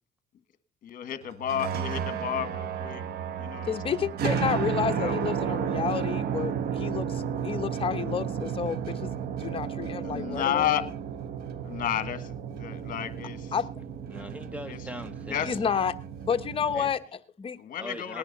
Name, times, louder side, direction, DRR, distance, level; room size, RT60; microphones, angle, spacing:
voice 1, 0.9-3.0 3.4-3.8 4.9-5.4 10.0-10.8 11.6-13.5 14.7-14.8 15.3-15.5 16.7-16.9 17.6-18.2, left 10 dB, 55° left, 1.6 m, -31 dB
sound 1, 1.3-16.9, right 8 dB, 70° right, 1.1 m, -33 dB
voice 2, 3.6-9.1 9.4-10.7 13.5-13.7 15.4-15.9 16.2-17.6, left 7 dB, 30° left, 1.1 m, -30 dB
voice 3, 14.1-15.7 17.8-18.2, equal, 10° right, 1.4 m, -41 dB
19.0 x 10.5 x 4.1 m
cardioid pair, 110°, 17 cm